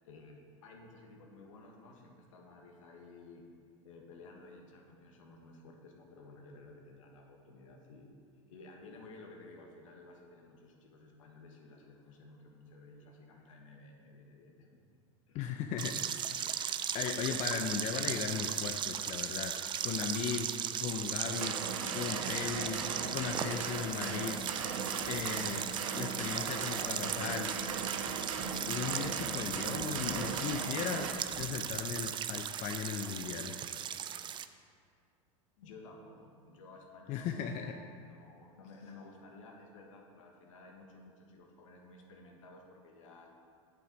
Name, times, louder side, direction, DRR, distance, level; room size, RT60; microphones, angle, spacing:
voice 1, 0.0-3.5 3.8-8.1 8.5-14.8 15.3-15.4 35.6-43.3, left 2 dB, 80° left, 1 dB, 1.7 m, -54 dB
voice 2, 15.3-15.9 16.5-21.6 21.9-22.8 23.1-24.4 25.1-25.6 25.9-27.5 28.5-33.5 37.1-37.7, left 7 dB, 45° left, 4 dB, 0.7 m, -37 dB
sound 1, 15.8-34.4, right 9 dB, 30° right, 0.4 m, -38 dB
sound 2, 21.2-31.1, right 6 dB, 80° right, 0.8 m, -38 dB
sound 3, 21.6-32.6, equal, 10° left, 1.9 m, -53 dB
8.5 x 7.1 x 5.2 m, 2.2 s
hypercardioid pair, 100°, 17 cm